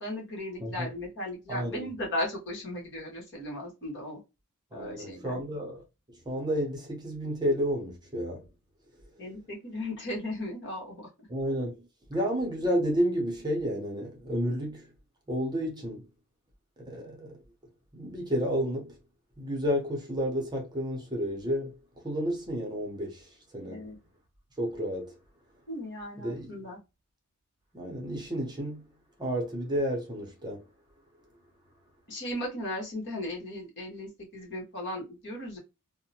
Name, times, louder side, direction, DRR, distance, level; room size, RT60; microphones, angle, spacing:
voice 1, 0.0-4.2 4.7-5.4 9.2-11.1 23.7-24.0 25.7-26.8 32.1-35.6, left 1 dB, 55° left, 1.2 m, -36 dB
voice 2, 0.6-0.9 1.5-1.9 4.7-5.8 6.3-8.5 11.3-11.8 12.1-14.9 15.3-16.0 16.9-17.4 17.9-18.9 19.4-21.7 22.0-23.8 24.6-25.2 26.2-26.7 27.7-28.8 29.2-30.6, equal, 20° right, 0.7 m, -31 dB
2.7 x 2.1 x 2.7 m
head